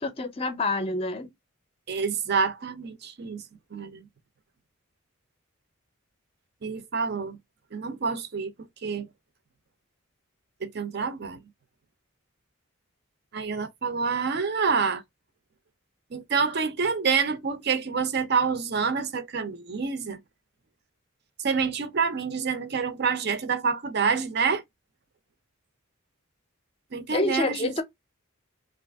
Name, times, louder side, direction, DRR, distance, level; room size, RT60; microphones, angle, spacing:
voice 1, 0.0-1.3 27.1-27.8, left 2 dB, 25° left, 0.5 m, -27 dB
voice 2, 1.9-3.4 3.7-4.1 6.6-7.4 7.7-8.5 8.8-9.1 10.6-11.4 13.3-15.0 16.1-20.2 21.4-24.6 26.9-27.7, right 5 dB, 50° right, 0.5 m, -27 dB
2.8 x 2.4 x 3.4 m
head